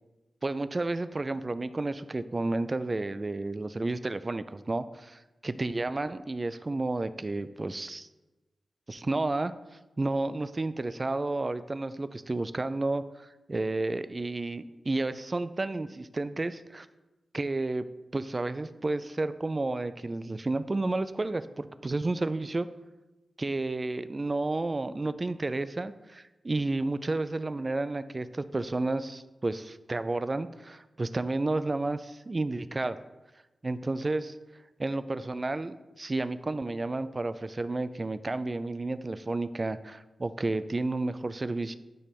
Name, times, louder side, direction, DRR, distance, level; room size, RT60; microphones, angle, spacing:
voice 1, 0.4-8.1 8.9-9.5 10.0-16.9 17.3-17.8 18.1-22.7 23.4-33.0 33.6-34.4 34.8-41.7, right 2 dB, 25° right, 12 dB, 0.3 m, -31 dB
9.8 x 3.3 x 5.2 m, 1.1 s
wide cardioid pair, 170°, 0 cm